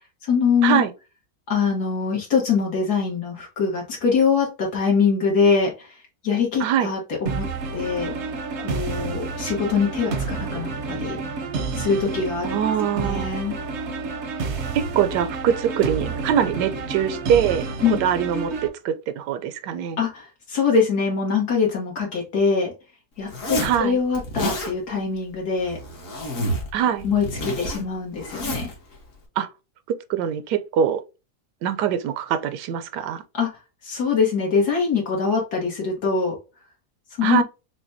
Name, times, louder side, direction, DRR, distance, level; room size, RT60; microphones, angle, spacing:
voice 1, 0.2-0.8 1.5-6.0 6.2-7.4 7.7-8.1 8.6-11.2 11.7-12.5 12.8-13.6 17.8-18.0 20.0-22.7 23.2-25.8 27.0-28.7 33.3-33.5 33.8-36.4 37.2-37.4, left 5 dB, 70° left, 1.7 m, -23 dB
voice 2, 6.6-6.9 12.4-13.3 14.7-17.7 18.0-20.0 23.6-24.0 26.7-27.0 29.4-29.5 29.9-31.0 31.6-33.2 37.2-37.4, right 9 dB, 85° right, 1.2 m, -23 dB
sound 1, 7.3-18.7, right 4 dB, 60° right, 0.8 m, -29 dB
Zipper (clothing), 23.3-23.8 24.2-24.7 25.6-26.7 27.0-28.8, equal, 50° left, 1.5 m, -29 dB
5.9 x 2.2 x 2.6 m
omnidirectional pair, 1.8 m